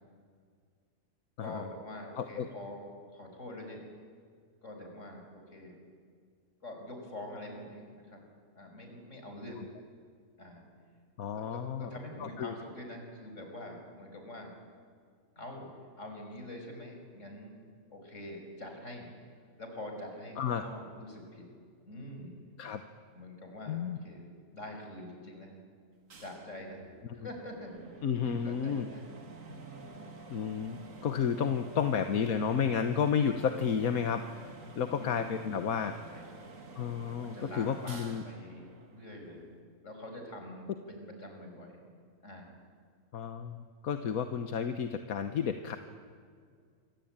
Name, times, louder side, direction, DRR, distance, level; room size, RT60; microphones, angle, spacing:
voice 1, 1.4-2.9 3.1-3.8 4.6-5.2 5.5-5.8 6.6-8.2 8.6-9.6 10.4-10.6 11.3-14.5 15.4-15.7 16.0-19.1 19.6-21.5 21.8-22.4 23.1-24.2 24.5-25.6 26.2-26.8 27.1-27.7 28.2-29.1 29.4-30.2 34.9-35.3 35.7-36.4 37.2-39.5 39.8-41.8 42.2-42.6, left 1 dB, 55° left, 3 dB, 5.8 m, -45 dB
voice 2, 2.2-2.5 11.2-11.9 12.2-12.5 20.4-20.6 22.6-22.8 23.7-24.0 28.0-28.9 30.3-34.2 34.8-36.0 36.7-38.2 43.1-45.8, left 7 dB, 80° left, 8 dB, 1.6 m, -31 dB
sound 1, 26.1-39.6, right 4 dB, 65° right, 2.4 m, -50 dB
27.0 x 24.5 x 8.9 m, 2.1 s
omnidirectional pair, 1.5 m